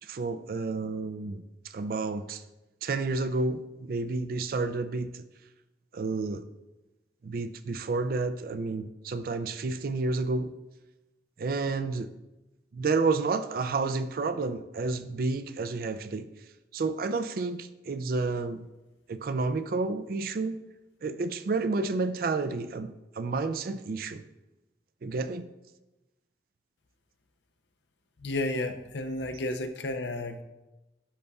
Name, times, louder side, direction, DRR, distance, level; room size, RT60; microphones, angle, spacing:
voice 1, 0.0-2.4 2.8-5.2 5.9-6.5 7.2-10.5 11.4-12.1 12.7-16.3 16.7-18.6 19.1-20.6 21.0-24.2 25.0-25.5, right 3 dB, 55° right, 12 dB, 0.4 m, -30 dB
voice 2, 28.2-30.4, left 2 dB, 80° left, 7 dB, 0.6 m, -32 dB
10.0 x 5.5 x 2.3 m, 1.0 s
head